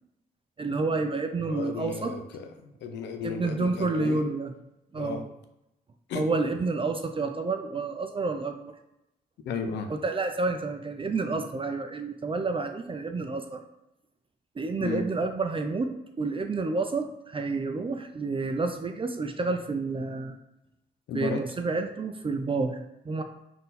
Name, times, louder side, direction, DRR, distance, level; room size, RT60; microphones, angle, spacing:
voice 1, 0.6-2.1 3.2-4.5 4.9-5.2 6.1-8.7 9.9-13.6 14.6-20.4 21.1-23.2, right 3 dB, 30° right, 5 dB, 0.4 m, -29 dB
voice 2, 1.4-4.2 5.0-5.2 6.1-6.3 9.4-9.9 14.8-15.0 21.1-21.4, left 5 dB, 85° left, 6 dB, 0.5 m, -34 dB
3.7 x 2.6 x 4.1 m, 0.89 s
supercardioid pair, 50°, 18 cm